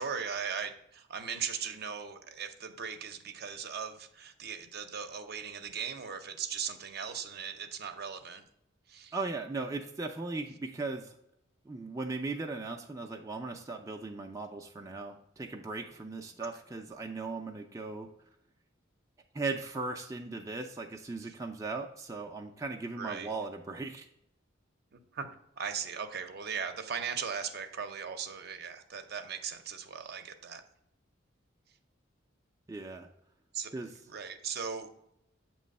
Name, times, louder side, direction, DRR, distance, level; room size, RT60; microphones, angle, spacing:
voice 1, 0.0-8.4 8.9-9.1 21.2-21.3 23.0-23.3 24.9-25.3 25.6-30.6 33.5-33.7 34.1-34.9, right 6 dB, 55° right, 8 dB, 0.6 m, -38 dB
voice 2, 9.1-11.2 11.7-18.1 19.3-24.1 32.7-33.1 33.7-33.9, right 3 dB, 15° right, 2 dB, 0.4 m, -38 dB
7.5 x 3.1 x 5.2 m, 0.78 s
head